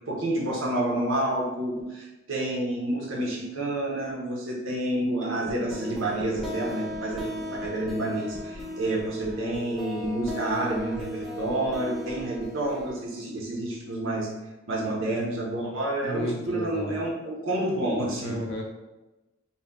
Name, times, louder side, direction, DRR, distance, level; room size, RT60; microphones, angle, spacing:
voice 1, 0.1-7.3 7.6-14.3 14.7-18.4, right 1 dB, 80° right, -2 dB, 0.7 m, -29 dB
sound 1, 5.5-13.0, equal, ahead, 0.4 m, -36 dB
voice 2, 16.0-17.0 18.2-18.6, left 1 dB, 60° left, 0 dB, 0.6 m, -32 dB
2.6 x 2.2 x 3.3 m, 1.1 s
head